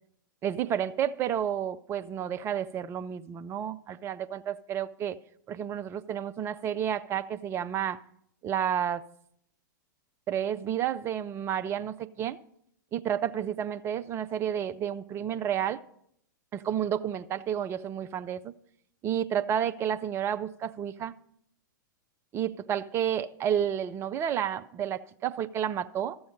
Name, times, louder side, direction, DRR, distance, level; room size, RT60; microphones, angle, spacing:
voice 1, 0.4-5.2 5.5-8.0 8.4-9.0 10.3-12.4 12.9-15.8 16.5-18.5 19.0-21.1 22.3-26.2, right 9 dB, 25° right, 0.5 m, -31 dB
13.5 x 7.0 x 5.2 m
figure-of-eight pair, 100°, 11 cm